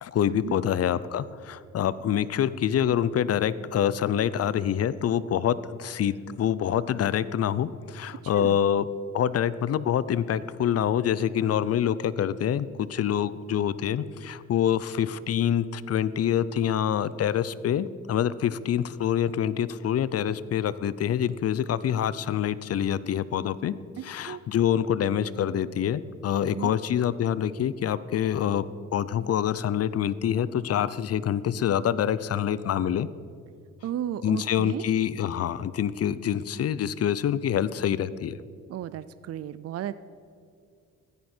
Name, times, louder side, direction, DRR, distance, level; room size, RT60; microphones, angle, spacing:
voice 1, 0.0-8.9 9.1-23.7 24.0-28.7 28.9-33.1 34.2-38.4, left 9 dB, 55° left, 17 dB, 0.6 m, -26 dB
voice 2, 8.2-8.6 24.0-24.4 26.4-26.7 33.8-34.8 38.7-39.9, right 11 dB, 55° right, 15 dB, 0.5 m, -34 dB
16.0 x 13.5 x 4.5 m, 2.3 s
cardioid pair, 90°, 30 cm